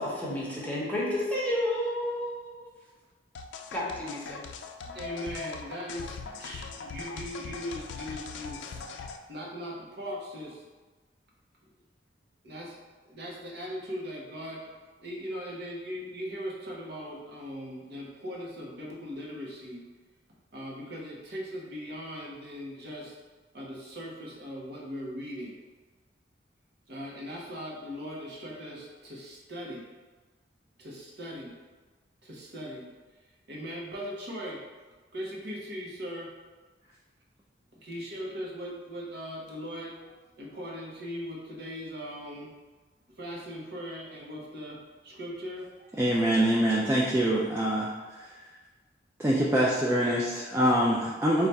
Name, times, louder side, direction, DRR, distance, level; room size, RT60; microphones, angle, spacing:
voice 1, 0.0-2.7 3.7-4.4, left 1 dB, 10° left, -7 dB, 0.9 m, -31 dB
sound 1, 3.3-9.2, left 5 dB, 75° left, 0.3 m, -40 dB
voice 2, 4.8-8.8 9.3-10.6 12.4-12.8 13.1-14.7 15.0-19.8 20.5-23.2 23.5-25.6 26.9-29.9 30.8-31.5 32.2-32.9 33.5-34.6 35.1-36.3 37.7-42.5 43.2-46.0, equal, 65° right, -4 dB, 0.9 m, -39 dB
voice 3, 46.0-47.9 49.2-51.5, right 1 dB, 15° right, -5 dB, 0.4 m, -24 dB
3.3 x 2.4 x 4.0 m, 1.3 s
head